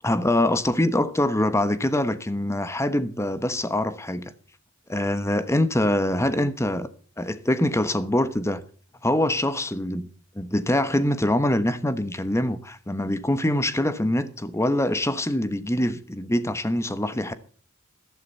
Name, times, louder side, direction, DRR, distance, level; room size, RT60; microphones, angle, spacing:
voice 1, 0.0-4.3 4.9-6.9 7.2-8.6 9.0-10.1 10.3-17.3, left 1 dB, 15° left, 1.2 m, -24 dB
15.0 x 12.0 x 4.1 m
head